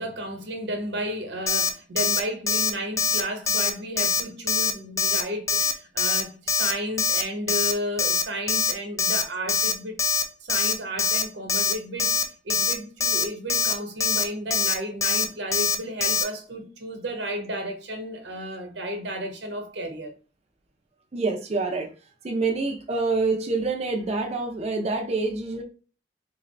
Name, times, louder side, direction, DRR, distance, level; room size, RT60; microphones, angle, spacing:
voice 1, 0.0-10.0 10.4-20.1, equal, 85° right, 1.0 m, -33 dB
Alarm, 1.5-1.7 2.0-2.2 2.5-2.7 3.0-3.2 3.5-3.7 4.0-4.2 4.5-4.7 5.0-5.2 5.5-5.7 6.0-6.2 6.5-6.7 7.0-7.2 7.5-7.7 8.0-8.2 8.5-8.7 9.0-9.2 9.5-9.7 10.0-10.2 10.5-10.7 11.0-11.2 11.5-11.7 12.0-12.2 12.5-12.7 13.0-13.2 13.5-13.7 14.0-14.2 14.5-14.7 15.0-15.2 15.5-15.7 16.0-16.2, left 5 dB, 20° left, 0.4 m, -23 dB
voice 2, 21.1-21.9 22.2-25.6, right 3 dB, 40° right, 0.5 m, -26 dB
3.9 x 2.5 x 3.1 m
head